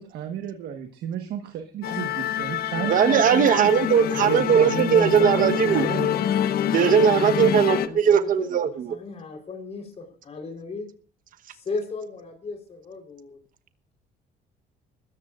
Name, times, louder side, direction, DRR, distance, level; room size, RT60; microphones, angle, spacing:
voice 1, 0.0-3.7 4.2-6.5, right 9 dB, 75° right, 5 dB, 1.4 m, -32 dB
Musical instrument, 1.8-7.9, left 10 dB, 65° left, 0.9 m, -26 dB
voice 2, 2.9-5.8 6.7-8.7, right 8 dB, 55° right, 11 dB, 1.2 m, -19 dB
voice 3, 7.7-10.9 11.5-13.4, left 3 dB, 40° left, 3 dB, 4.0 m, -36 dB
24.0 x 14.0 x 2.5 m, 0.41 s
cardioid pair, 110°, 17 cm